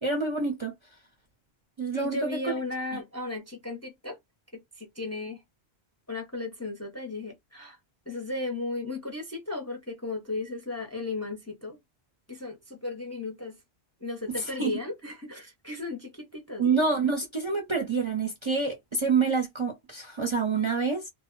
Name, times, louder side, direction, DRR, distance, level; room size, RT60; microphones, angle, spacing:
voice 1, 0.0-0.7 1.8-2.5 2.9-3.0 14.4-14.7 16.6-21.1, right 4 dB, 35° right, 0.5 m, -27 dB
voice 2, 1.9-4.2 4.5-5.4 6.1-7.8 8.1-11.8 12.3-13.6 14.0-16.6, left 3 dB, 20° left, 0.5 m, -35 dB
2.1 x 2.0 x 3.7 m
omnidirectional pair, 1.1 m